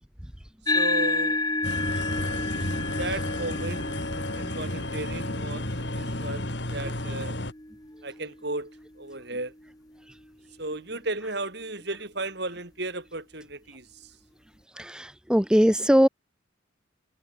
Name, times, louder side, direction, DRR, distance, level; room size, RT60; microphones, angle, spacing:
sound 1, 0.7-9.4, left 2 dB, 20° left, 4.1 m, -31 dB
voice 1, 0.7-1.4 3.0-3.9 4.3-7.4 8.0-9.5 10.6-14.1, right 2 dB, 55° right, 4.8 m, -35 dB
sound 2, 1.6-7.5, left 1 dB, 60° left, 4.4 m, -32 dB
voice 2, 1.9-2.3 2.5-2.7 6.8-6.9 10.1-10.2 14.7-16.1, equal, 5° right, 0.9 m, -22 dB
head